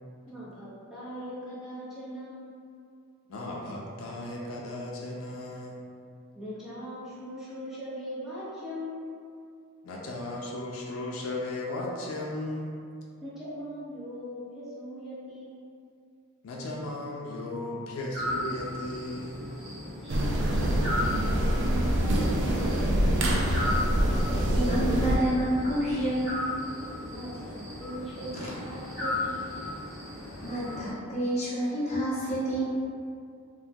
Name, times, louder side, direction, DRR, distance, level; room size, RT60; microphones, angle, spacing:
voice 1, 0.3-2.5 6.3-9.1 13.2-15.6 20.0-20.8 21.3-23.5 27.1-29.5, equal, ahead, -11 dB, 0.7 m, -40 dB
voice 2, 3.3-5.8 9.8-12.7 16.4-19.5, left 1 dB, 75° left, -3 dB, 0.4 m, -36 dB
sound 1, 18.1-30.9, left 1 dB, 80° right, 1.3 m, -36 dB
sound 2, 20.1-25.2, right 1 dB, 60° right, 0.4 m, -25 dB
voice 3, 24.1-26.5 27.4-27.5 30.1-32.6, right 1 dB, 30° left, -8 dB, 0.7 m, -29 dB
3.1 x 2.2 x 2.6 m, 2.3 s
head